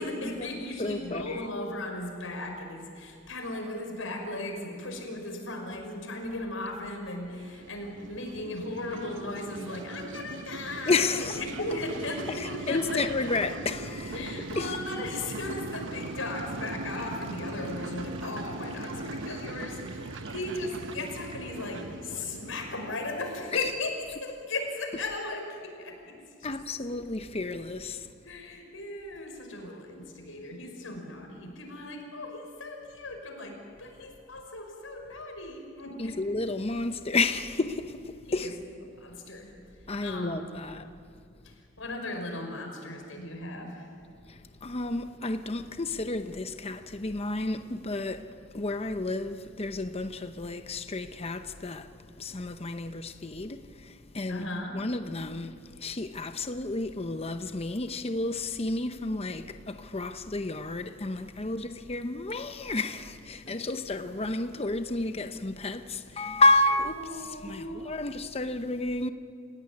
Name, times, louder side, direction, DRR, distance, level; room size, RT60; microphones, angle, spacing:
voice 1, 0.0-13.3 14.1-23.9 24.2-26.1 26.4-26.5 28.2-36.2 38.3-38.5 38.9-39.5 40.0-40.5 41.4-43.9 54.3-54.8 63.4-63.6 66.9-67.9, left 2 dB, 85° left, 5.8 m, -37 dB
voice 2, 0.8-1.5 10.9-11.4 12.3-14.3 14.6-14.7 23.5-23.6 26.4-28.1 36.0-38.6 39.9-40.9 44.3-69.1, left 2 dB, 30° left, 0.8 m, -31 dB
sound 1, 7.4-24.0, right 2 dB, 65° right, 0.9 m, -40 dB
Fill (with liquid), 13.3-21.5, right 3 dB, 30° right, 2.1 m, -51 dB
29.0 x 17.0 x 9.9 m
head